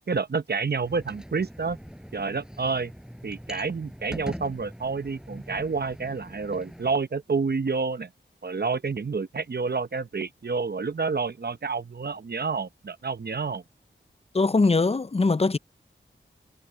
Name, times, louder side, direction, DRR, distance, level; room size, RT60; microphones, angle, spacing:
voice 1, 0.1-1.8 2.1-2.9 3.2-8.1 8.4-13.6, right 4 dB, 55° right, 0.8 m, -29 dB
sound 1, 0.8-6.9, equal, 5° right, 6.9 m, -42 dB
voice 2, 14.3-15.6, left 3 dB, 30° left, 0.6 m, -21 dB
cardioid pair, 45°, 20 cm